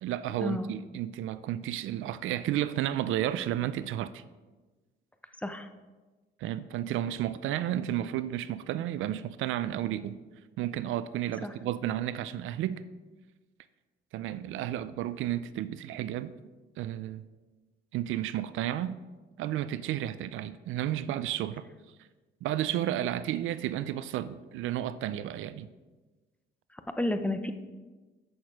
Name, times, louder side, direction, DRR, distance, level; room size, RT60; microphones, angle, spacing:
voice 1, 0.0-4.2 6.4-10.2 10.6-12.8 14.1-16.3 16.8-17.2 17.9-19.0 19.4-21.7 22.4-25.7, right 12 dB, 85° right, 15 dB, 0.4 m, -32 dB
voice 2, 26.7-27.5, left 1 dB, 5° left, 8 dB, 0.6 m, -31 dB
8.1 x 6.3 x 4.8 m, 1.3 s
cardioid pair, 90°, 20 cm